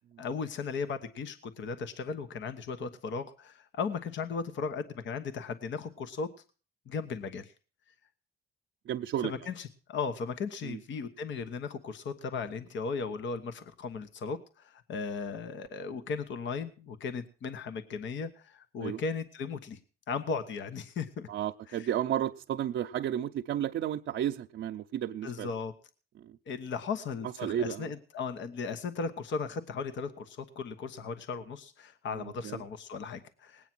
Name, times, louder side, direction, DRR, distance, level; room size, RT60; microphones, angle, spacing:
voice 1, 0.2-6.3 6.9-7.5 9.2-19.8 20.1-21.3 21.7-21.9 25.2-25.7 26.5-33.7, left 5 dB, 70° left, 10 dB, 1.2 m, -36 dB
voice 2, 8.9-9.3 10.6-10.8 18.8-19.0 21.3-25.5 26.2-26.3 27.4-27.9 32.2-32.6, right 10 dB, 70° right, 4 dB, 0.7 m, -32 dB
19.0 x 9.0 x 6.1 m, 0.38 s
cardioid pair, 90°, 20 cm